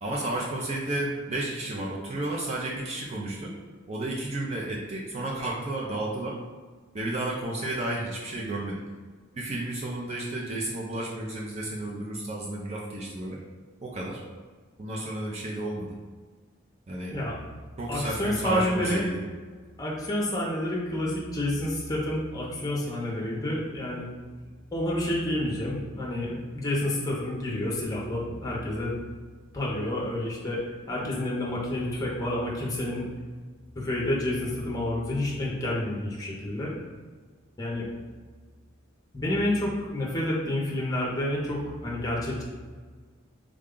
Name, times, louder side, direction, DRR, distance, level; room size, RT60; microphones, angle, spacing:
voice 1, 0.0-3.5 3.9-6.4 6.9-8.8 9.3-13.4 13.8-14.2 14.8-16.0 16.9-17.2 17.8-19.2, right 1 dB, 30° right, -3 dB, 0.4 m, -32 dB
voice 2, 17.9-19.0 19.8-24.1 24.7-29.0 29.5-30.6 30.9-33.1 33.8-36.7 37.6-37.9 39.1-42.4, left 1 dB, 15° left, -4 dB, 0.6 m, -29 dB
3.6 x 2.2 x 3.7 m, 1.5 s
head